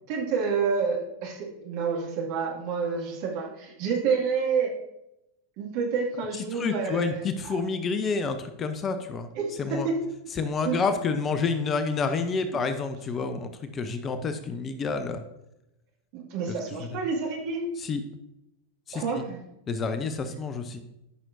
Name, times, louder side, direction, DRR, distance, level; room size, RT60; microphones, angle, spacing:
voice 1, 0.1-4.8 5.6-7.6 9.4-10.0 10.6-10.8 16.1-17.6 18.9-19.4, right 5 dB, 45° right, -1 dB, 2.2 m, -29 dB
voice 2, 6.4-9.3 9.6-9.9 10.4-15.2 16.5-16.6 16.8-17.0 17.8-18.0 18.9-19.2 19.7-20.8, left 4 dB, 25° left, 9 dB, 0.6 m, -29 dB
13.5 x 5.9 x 2.6 m, 0.88 s
figure-of-eight pair, 90°, 0 cm